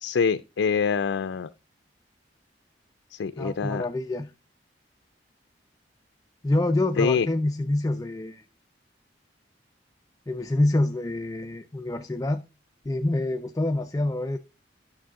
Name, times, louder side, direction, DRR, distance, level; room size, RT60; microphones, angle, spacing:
voice 1, 0.0-1.5 3.1-3.8 7.0-7.3, left 5 dB, 90° left, 0.4 m, -25 dB
voice 2, 3.4-4.3 6.4-8.4 10.3-12.4 12.8-14.4, left 1 dB, 20° left, 0.4 m, -26 dB
11.5 x 6.3 x 3.6 m
head